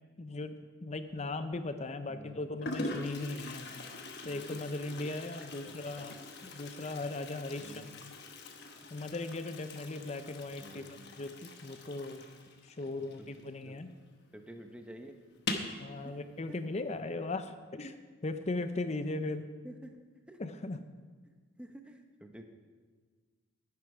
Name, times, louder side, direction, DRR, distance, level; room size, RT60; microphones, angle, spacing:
voice 1, 0.2-3.7 4.2-6.1 6.5-8.1 8.9-10.9 11.2-12.3 12.6-13.9 15.8-19.5 20.4-20.8, left 2 dB, 30° left, 10 dB, 0.6 m, -38 dB
Toilet flush, 1.1-1.6 2.3-2.4 2.6-13.9 14.2-14.3 14.6-14.7 15.3-15.8, left 2 dB, 50° left, 1.1 m, -43 dB
voice 2, 2.1-2.4 4.2-4.5 5.6-6.1 7.5-7.9 10.6-11.0 13.2-13.3 13.6-13.8 14.3-15.1 16.0-16.2 19.6-20.0 20.3-20.4 21.6-22.4, right 1 dB, 5° right, 5 dB, 0.8 m, -50 dB
11.5 x 10.5 x 4.8 m, 1.5 s
head